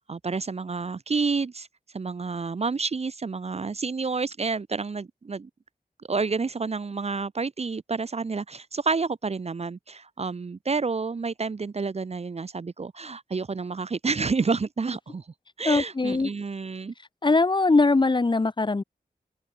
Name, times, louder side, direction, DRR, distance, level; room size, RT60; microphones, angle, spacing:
voice 1, 0.0-1.7 1.9-5.5 6.1-15.2 15.6-16.9, right 4 dB, 40° right, 0.5 m, -29 dB
voice 2, 15.7-16.3 17.2-18.8, left 3 dB, 30° left, 0.6 m, -21 dB
open air
cardioid pair, 45°, 16 cm